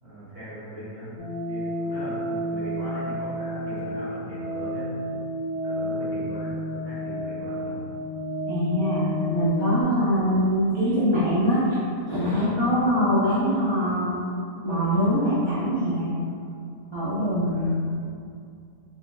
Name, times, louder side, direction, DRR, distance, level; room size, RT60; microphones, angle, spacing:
voice 1, 0.0-1.1 1.5-4.9 5.6-7.9 17.4-17.8, equal, 40° right, -12 dB, 1.3 m, -39 dB
sound 1, 1.2-9.8, equal, 60° left, 1.2 m, -31 dB
voice 2, 8.5-11.8 12.1-14.1 14.6-16.1 16.9-17.8, equal, 40° left, -13 dB, 0.3 m, -23 dB
4.1 x 2.6 x 2.3 m, 2.5 s
omnidirectional pair, 1.7 m